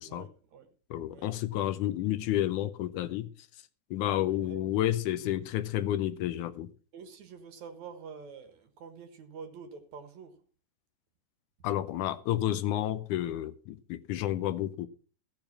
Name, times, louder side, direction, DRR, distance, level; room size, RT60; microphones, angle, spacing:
voice 1, 0.1-0.8 1.1-1.3 4.1-4.6 6.9-10.4, right 5 dB, 65° right, 2.8 m, -47 dB
voice 2, 0.9-3.3 3.9-6.7 11.6-14.9, left 13 dB, 80° left, 2.2 m, -30 dB
15.0 x 7.0 x 5.9 m
omnidirectional pair, 3.7 m